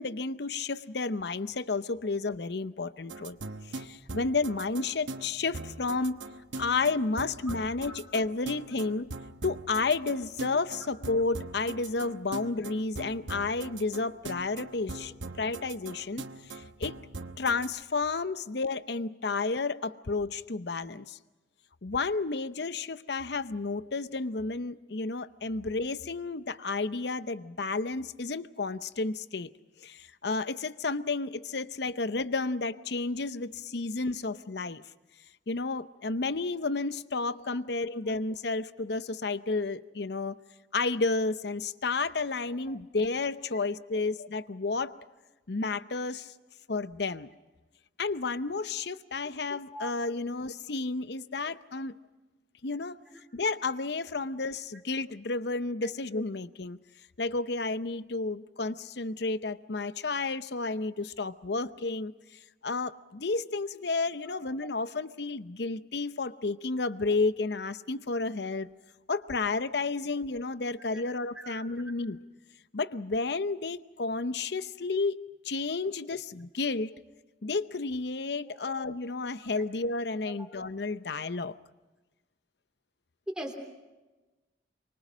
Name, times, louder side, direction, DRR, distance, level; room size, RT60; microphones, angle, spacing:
voice 1, 0.0-3.4 3.7-6.2 6.6-9.1 9.4-15.1 15.4-17.0 17.4-21.2 21.8-29.5 29.8-34.8 35.5-40.4 40.7-44.9 45.5-46.3 46.7-47.3 48.0-51.9 52.6-53.0 53.3-56.8 57.2-62.1 62.6-68.7 69.1-72.2 72.7-75.2 75.4-77.0 77.4-81.5, left 3 dB, 60° left, 14 dB, 0.7 m, -31 dB
sound 1, 3.1-17.7, right 2 dB, 80° right, 1.1 m, -41 dB
voice 2, 83.3-83.6, right 1 dB, 5° right, 2 dB, 3.3 m, -42 dB
25.0 x 24.0 x 6.2 m, 1.1 s
head